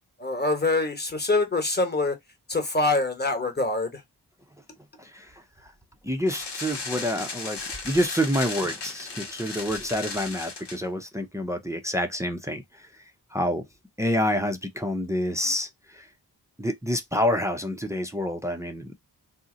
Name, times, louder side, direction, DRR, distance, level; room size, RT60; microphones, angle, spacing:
voice 1, 0.2-2.2 2.5-4.0, left 2 dB, 25° left, 1.1 m, -25 dB
voice 2, 5.0-5.7 6.0-13.0 13.3-13.6 14.0-16.1 16.6-18.9, equal, 5° right, 0.5 m, -28 dB
sound 1, 6.3-10.8, left 4 dB, 85° left, 1.1 m, -36 dB
2.7 x 2.1 x 3.7 m
cardioid pair, 65°, 41 cm